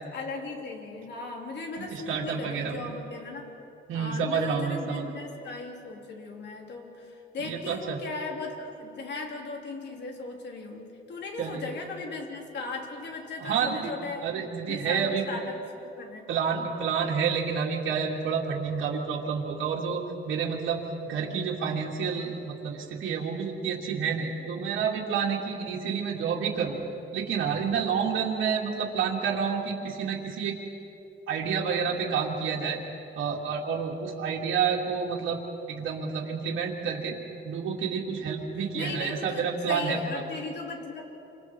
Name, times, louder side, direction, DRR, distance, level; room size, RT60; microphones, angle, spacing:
voice 1, 0.0-3.5 3.9-14.4 14.7-16.3 38.1-41.0, left 3 dB, 60° left, 1 dB, 3.3 m, -38 dB
voice 2, 1.8-2.8 3.9-5.1 7.4-8.0 11.4-11.7 13.4-13.9 14.2-15.3 16.3-26.8 27.1-30.6 31.3-32.8 33.2-35.4 35.7-37.2 37.4-40.2, right 6 dB, 90° right, -3 dB, 2.6 m, -29 dB
28.0 x 26.5 x 4.6 m, 2.9 s
cardioid pair, 125°, 20 cm